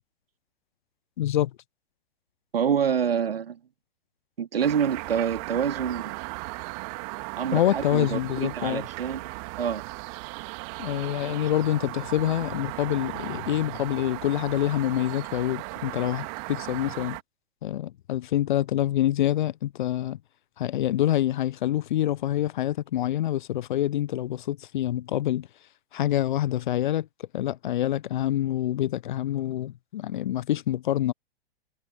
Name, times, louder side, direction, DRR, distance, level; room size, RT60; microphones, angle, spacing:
voice 1, 1.2-1.5 7.5-8.8 10.8-17.2 17.6-20.2 20.6-25.5 25.9-27.1 27.3-31.1, left 13 dB, 50° left, 1.0 m, -26 dB
voice 2, 2.5-3.6 4.4-6.2 7.4-9.3 9.6-9.8, right 8 dB, 65° right, 3.1 m, -27 dB
sound 1, 4.6-17.2, right 34 dB, 35° right, 2.0 m, -37 dB
figure-of-eight pair, 110°, 32 cm